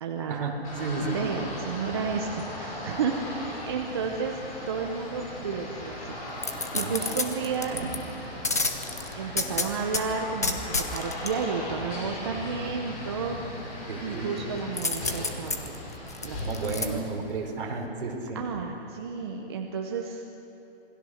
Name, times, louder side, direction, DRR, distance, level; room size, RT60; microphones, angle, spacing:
voice 1, 0.0-0.6 1.0-4.4 4.7-6.2 6.7-7.8 9.1-13.6 14.0-15.8 16.2-17.1 18.3-20.2, right 5 dB, 25° right, 2 dB, 0.9 m, -32 dB
sound 1, 0.6-16.9, left 1 dB, 35° left, 6.2 m, -38 dB
voice 2, 0.8-1.2 6.7-6.9 7.7-7.9 13.9-14.4 16.3-18.5, right 3 dB, 55° right, 0 dB, 4.7 m, -32 dB
sound 2, 6.4-8.0 8.4-10.0 10.4-11.3 14.8-16.9 17.3-17.4, left 3 dB, 15° left, 0.5 m, -29 dB
27.0 x 21.5 x 6.5 m, 3.0 s
hypercardioid pair, 175°, 33 cm